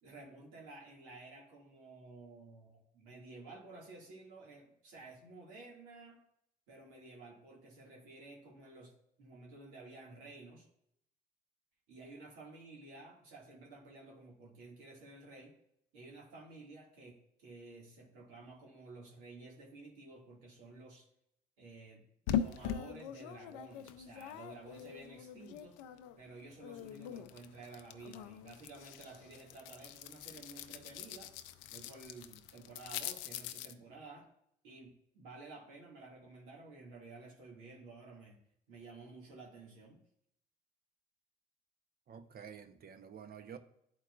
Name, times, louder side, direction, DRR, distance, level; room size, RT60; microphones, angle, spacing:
voice 1, 0.0-6.2 6.7-8.9 9.2-10.7 11.9-15.5 15.9-21.1 21.6-25.8 26.2-31.3 31.7-34.3 34.6-38.4 38.7-40.0, right 3 dB, 85° right, -2 dB, 2.0 m, -53 dB
sound 1, 22.3-26.2 26.5-33.7, left 9 dB, 90° left, 0.5 m, -42 dB
voice 2, 42.1-43.6, right 7 dB, 50° right, 8 dB, 0.8 m, -50 dB
11.5 x 4.6 x 2.4 m, 0.74 s
supercardioid pair, 65°, 20 cm